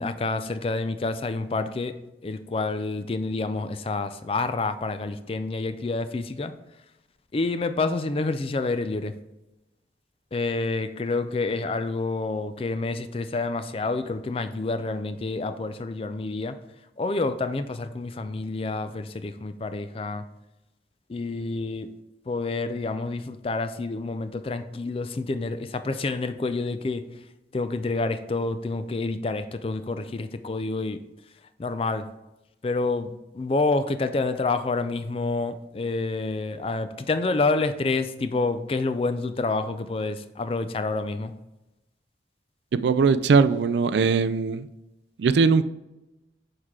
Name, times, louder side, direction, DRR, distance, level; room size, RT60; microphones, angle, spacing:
voice 1, 0.0-1.9 2.2-6.5 7.3-9.1 10.3-16.6 17.0-20.2 21.1-21.9 22.3-27.0 27.5-31.0 31.6-32.1 32.6-41.3, left 3 dB, 30° left, 11 dB, 0.4 m, -28 dB
voice 2, 42.8-44.7 45.2-45.6, right 5 dB, 75° right, 13 dB, 0.4 m, -20 dB
6.5 x 4.6 x 3.7 m, 0.96 s
head